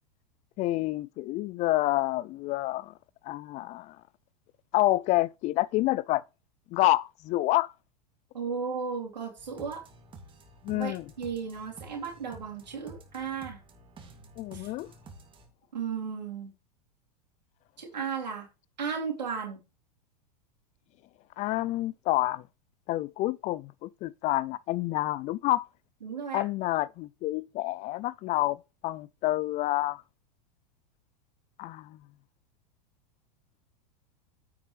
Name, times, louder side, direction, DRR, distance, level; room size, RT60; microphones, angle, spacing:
voice 1, 0.6-2.9 3.2-4.0 4.7-6.2 6.7-7.7 10.6-11.0 14.4-14.9 21.4-22.4 22.9-25.7 26.3-28.6 28.8-30.0 31.6-32.0, left 17 dB, 35° left, 0.4 m, -28 dB
voice 2, 8.3-9.8 10.7-13.6 14.5-14.7 15.7-16.5 17.8-18.5 18.8-19.6 26.0-26.4, right 6 dB, 90° right, 2.7 m, -35 dB
sound 1, 9.4-15.5, right 2 dB, 25° right, 2.4 m, -51 dB
8.9 x 7.3 x 3.2 m
hypercardioid pair, 105°, 21 cm